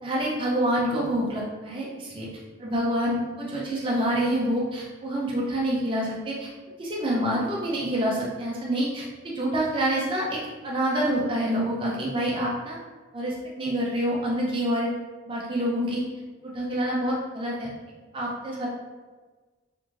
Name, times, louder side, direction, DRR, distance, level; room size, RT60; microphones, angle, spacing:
voice 1, 0.0-2.3 2.6-6.5 6.8-10.4 10.6-12.8 13.1-14.9 15.3-16.0 16.4-17.7 18.1-18.7, right 1 dB, 25° right, -4 dB, 0.4 m, -27 dB
3.0 x 2.5 x 2.3 m, 1.3 s
head